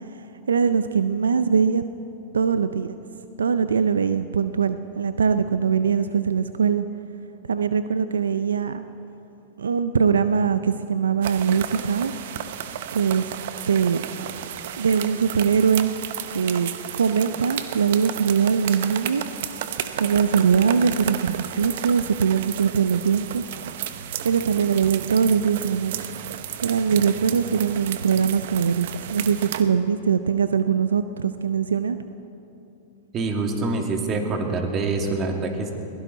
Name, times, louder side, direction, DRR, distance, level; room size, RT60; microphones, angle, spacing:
voice 1, 0.5-1.8 2.3-3.0 3.4-6.9 7.5-8.8 9.6-12.1 12.9-13.2 13.7-14.0 14.8-15.9 16.3-19.2 20.0-23.4 24.2-26.1 26.6-32.0, right 6 dB, 85° right, 11 dB, 0.5 m, -22 dB
sound 1, 11.2-29.6, right 10 dB, 65° right, 0.9 m, -33 dB
voice 2, 33.1-35.7, right 3 dB, 35° right, 3 dB, 2.3 m, -25 dB
21.5 x 16.0 x 4.0 m, 2.9 s
hypercardioid pair, 105°, 0 cm